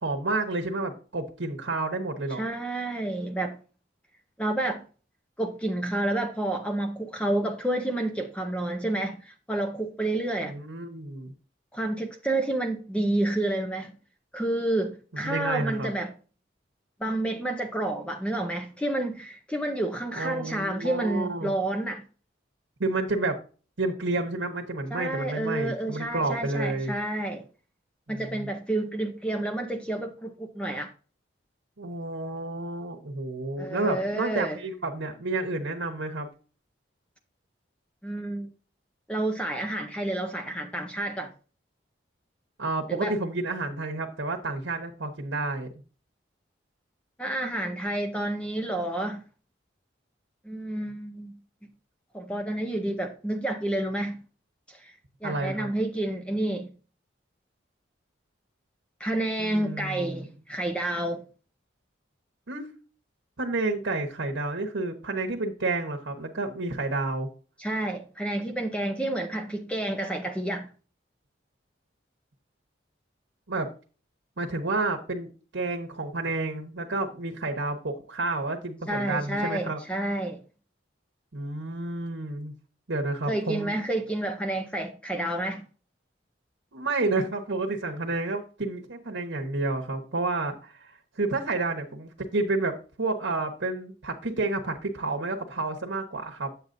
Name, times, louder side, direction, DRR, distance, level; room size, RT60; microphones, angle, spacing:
voice 1, 0.0-2.4 10.4-11.3 15.1-15.9 20.1-21.5 22.8-23.4 23.8-26.9 28.1-28.5 31.8-36.3 42.6-45.7 55.2-55.7 59.4-60.3 62.5-62.7 63.4-67.3 73.5-73.7 74.4-79.8 81.3-82.5 82.9-83.8 86.7-96.5, right 2 dB, 80° right, 1.1 m, -30 dB
voice 2, 2.3-3.6 4.4-4.8 5.4-10.6 11.7-13.9 14.3-16.1 17.0-22.0 24.9-27.4 28.1-30.9 33.6-34.6 38.0-38.5 39.1-41.3 42.9-43.2 47.2-49.2 50.4-51.4 52.1-54.2 54.7-55.0 55.2-56.7 59.0-61.2 67.6-70.7 78.9-80.4 83.3-85.6, right 1 dB, 5° left, 0.6 m, -29 dB
8.2 x 8.0 x 2.6 m
head